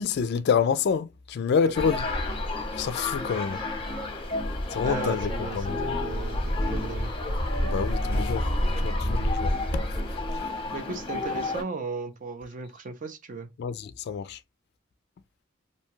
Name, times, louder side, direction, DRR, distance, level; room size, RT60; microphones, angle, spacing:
voice 1, 0.0-2.0 2.8-3.6 4.7-5.7 7.6-8.5 8.8-9.8 13.6-14.4, left 6 dB, 55° left, 0.3 m, -27 dB
sound 1, 1.7-11.6, left 1 dB, 25° left, 0.7 m, -29 dB
voice 2, 4.8-7.1 10.7-13.5, right 4 dB, 40° right, 0.5 m, -36 dB
2.7 x 2.2 x 2.9 m
head